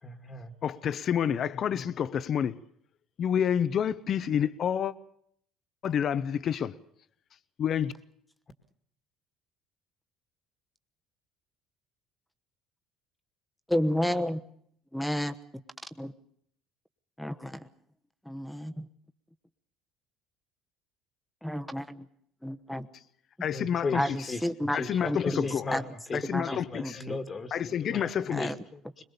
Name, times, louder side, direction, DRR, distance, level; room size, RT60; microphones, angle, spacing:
voice 1, 0.0-0.5 23.5-24.4 24.7-25.8 26.1-29.0, left 3 dB, 35° left, 1.8 m, -37 dB
voice 2, 0.6-2.6 3.2-4.9 5.8-6.7 7.6-7.9 23.4-24.0 24.7-25.7 26.1-27.0 27.5-28.5, left 8 dB, 50° left, 0.9 m, -28 dB
voice 3, 13.7-14.4 14.9-15.3 16.0-16.1 17.2-17.7 18.2-18.9 21.4-22.1 22.4-22.9 23.9-25.8 26.1-27.2 28.3-28.6, equal, 5° left, 1.1 m, -31 dB
22.0 x 21.0 x 7.0 m
supercardioid pair, 75°, 0 cm